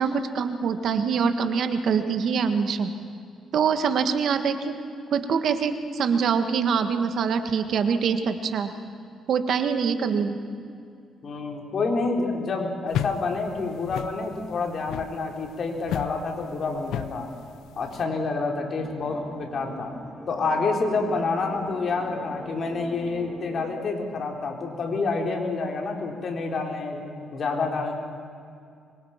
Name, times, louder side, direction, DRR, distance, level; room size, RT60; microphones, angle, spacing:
voice 1, 0.0-2.9 3.5-4.8 5.1-8.7 9.3-10.4, right 6 dB, 65° right, 8 dB, 1.6 m, -24 dB
voice 2, 11.2-17.3 17.8-19.9 20.3-27.0 27.3-27.9, left 3 dB, 50° left, 2 dB, 3.8 m, -28 dB
sound 1, 12.9-18.0, left 10 dB, 80° left, 0.6 m, -34 dB
sound 2, 18.8-23.8, left 1 dB, ahead, 2.7 m, -43 dB
25.0 x 23.5 x 5.9 m, 2.3 s
cardioid pair, 90°, 0 cm